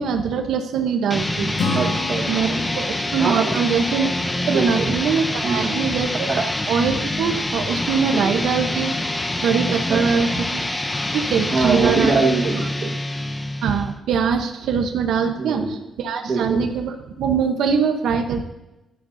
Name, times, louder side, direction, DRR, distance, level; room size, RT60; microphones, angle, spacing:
voice 1, 0.0-1.6 2.3-2.5 2.8-6.3 6.7-9.0 9.4-10.6 11.1-12.2 13.6-18.4, right 6 dB, 75° right, 5 dB, 0.9 m, -22 dB
sound 1, 1.1-13.9, left 1 dB, 10° left, 0.6 m, -26 dB
Acoustic guitar / Strum, 1.6-5.2, left 3 dB, 70° left, 2.1 m, -31 dB
voice 2, 1.7-2.6 3.2-3.6 4.5-4.9 5.4-5.8 6.3-6.4 8.1-8.5 9.9-10.0 11.5-13.0 15.4-15.8 16.3-16.7, right 4 dB, 40° right, 2 dB, 1.5 m, -23 dB
14.5 x 12.0 x 2.7 m, 0.98 s
cardioid pair, 170°, 0 cm